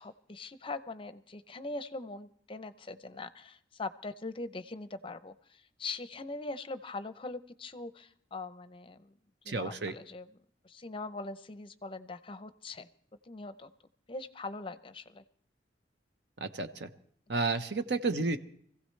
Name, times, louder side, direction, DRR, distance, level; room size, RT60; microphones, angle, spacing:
voice 1, 0.0-9.1 9.4-10.3 10.6-12.9 13.3-13.7 14.1-15.2, left 3 dB, 30° left, 12 dB, 0.6 m, -42 dB
voice 2, 9.5-9.9 16.4-16.9 17.3-18.4, right 3 dB, 65° right, 9 dB, 0.9 m, -31 dB
25.0 x 15.5 x 3.2 m, 0.62 s
head